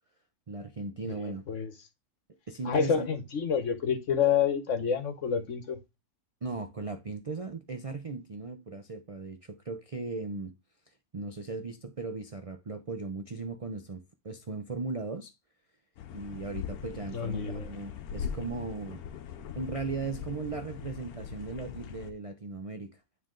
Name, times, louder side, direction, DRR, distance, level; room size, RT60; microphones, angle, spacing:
voice 1, 0.5-1.4 2.5-3.1 6.4-10.5 11.1-15.3 16.1-19.0 19.6-23.0, right 3 dB, 55° right, 0.4 m, -37 dB
voice 2, 1.0-1.7 2.6-5.8 17.0-17.7, left 7 dB, 60° left, 1.3 m, -29 dB
sound 1, 16.0-22.1, left 7 dB, 85° left, 1.2 m, -41 dB
9.4 x 3.4 x 3.7 m
omnidirectional pair, 1.5 m